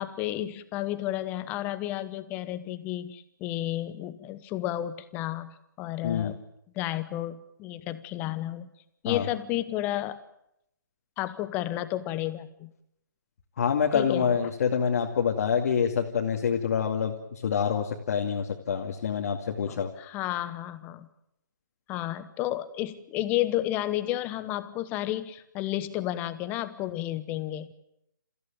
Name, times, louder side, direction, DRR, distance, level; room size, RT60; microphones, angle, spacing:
voice 1, 0.0-6.4 6.7-8.7 9.0-10.2 11.2-12.7 13.9-14.3 19.7-21.1 21.9-27.7, left 14 dB, 15° left, 13 dB, 1.1 m, -32 dB
voice 2, 6.0-6.3 9.0-9.3 13.6-19.9, left 7 dB, 45° left, 0 dB, 2.4 m, -26 dB
29.0 x 15.5 x 9.2 m, 0.82 s
figure-of-eight pair, 150°, 11 cm